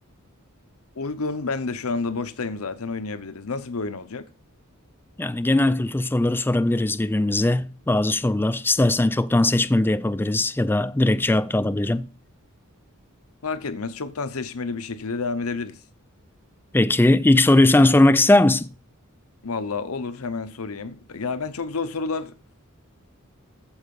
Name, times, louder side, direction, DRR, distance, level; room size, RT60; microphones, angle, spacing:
voice 1, 1.0-4.2 13.4-15.8 19.4-22.3, left 4 dB, 80° left, 0.8 m, -29 dB
voice 2, 5.2-12.1 16.7-18.7, left 2 dB, 10° left, 0.4 m, -19 dB
14.5 x 4.8 x 5.3 m
head